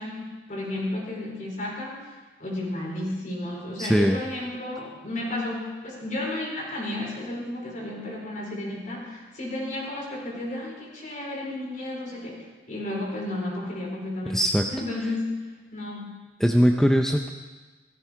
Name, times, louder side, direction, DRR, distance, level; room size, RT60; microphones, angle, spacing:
voice 1, 0.0-16.2, left 1 dB, 45° left, -2 dB, 4.6 m, -33 dB
voice 2, 3.8-4.2 14.3-14.6 16.4-17.3, equal, 5° left, 3 dB, 0.6 m, -20 dB
17.0 x 14.5 x 4.6 m, 1.3 s
head